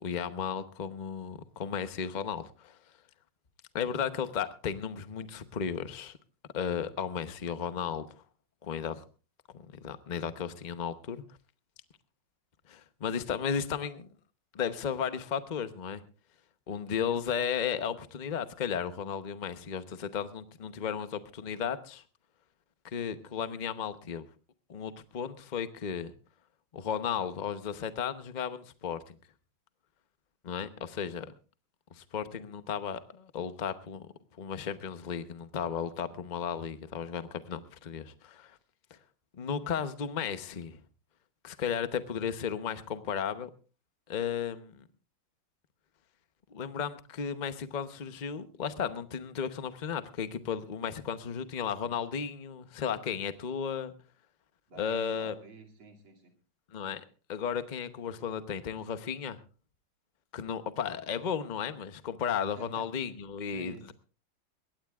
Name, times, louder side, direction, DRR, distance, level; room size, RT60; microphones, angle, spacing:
voice 1, 0.0-2.8 3.7-6.2 6.5-8.1 8.6-9.0 9.5-11.2 12.7-14.1 14.5-16.0 16.7-22.0 22.8-24.3 24.7-26.1 26.7-29.2 30.4-31.3 31.9-34.1 34.4-38.6 39.3-40.8 41.4-43.5 44.1-44.9 46.5-53.9 54.8-55.3 56.7-57.0 57.3-59.4 60.3-63.9, left 7 dB, 65° left, 11 dB, 0.4 m, -34 dB
voice 2, 54.7-56.3 62.6-62.9 63.5-63.9, right 3 dB, 75° right, 2 dB, 3.5 m, -50 dB
21.5 x 17.5 x 2.4 m, 0.34 s
omnidirectional pair, 2.3 m